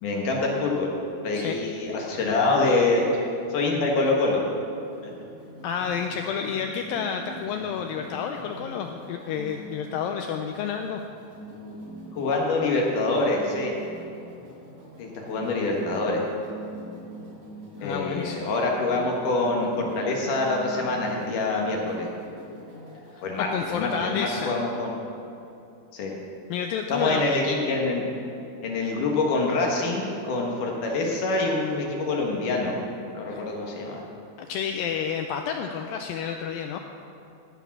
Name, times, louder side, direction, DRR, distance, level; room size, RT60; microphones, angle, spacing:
voice 1, 0.0-0.9 1.2-3.1 3.5-4.4 5.0-5.1 12.1-13.7 15.0-16.2 17.8-22.1 23.2-25.0 25.9-26.1 26.9-28.0 28.6-32.8 33.1-34.0, left 3 dB, 60° left, -1 dB, 2.7 m, -25 dB
sound 1, 4.7-23.6, right 1 dB, 55° right, 4.3 m, -43 dB
voice 2, 5.6-11.0 17.8-18.5 23.4-24.6 26.5-27.2 33.3-33.4 34.5-36.8, left 7 dB, 85° left, 4 dB, 2.0 m, -30 dB
15.5 x 7.1 x 5.9 m, 2.7 s
omnidirectional pair, 4.7 m